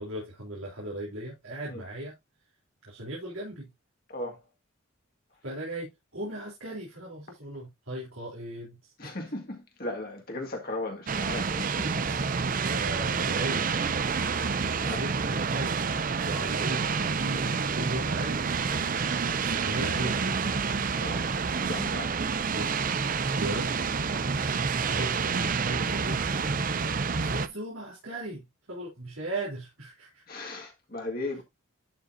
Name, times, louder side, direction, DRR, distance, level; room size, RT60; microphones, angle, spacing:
voice 1, 0.0-2.2 2.9-3.7 5.4-9.2 11.8-13.9 14.6-15.8 16.2-20.7 22.5-22.7 23.4-24.3 24.8-26.4 27.2-30.4, right 1 dB, 80° right, 3.6 m, -38 dB
voice 2, 9.0-11.8 14.2-15.0 18.7-18.8 20.9-21.2 21.5-22.1 30.3-31.4, left 2 dB, 45° left, 2.0 m, -37 dB
sound 1, 11.1-27.5, right 5 dB, 40° right, 0.5 m, -28 dB
11.5 x 5.2 x 2.7 m
head